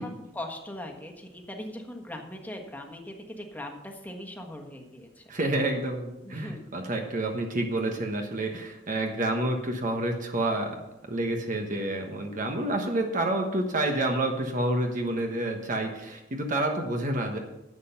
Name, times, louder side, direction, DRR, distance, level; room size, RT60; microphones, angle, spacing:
voice 1, 0.0-5.2 6.2-6.6, left 1 dB, 10° left, 2 dB, 1.5 m, -40 dB
voice 2, 5.3-10.8 11.1-17.4, right 1 dB, 45° right, 3 dB, 1.3 m, -29 dB
11.0 x 7.8 x 5.7 m, 0.93 s
head